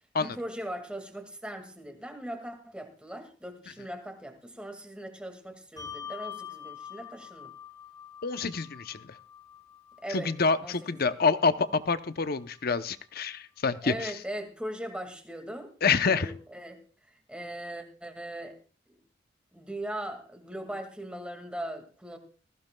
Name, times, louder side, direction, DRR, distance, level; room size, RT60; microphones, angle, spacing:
voice 1, 0.2-7.5 10.0-10.3 10.6-10.9 13.8-15.7 16.0-16.8 17.3-18.6 19.5-22.2, right 1 dB, 5° right, 5 dB, 2.1 m, -39 dB
Bell, 5.8-12.6, left 8 dB, 20° left, 2.9 m, -46 dB
voice 2, 8.2-9.2 10.1-14.2 15.8-16.3, left 4 dB, 55° left, 12 dB, 0.8 m, -27 dB
20.0 x 15.0 x 2.3 m, 0.39 s
head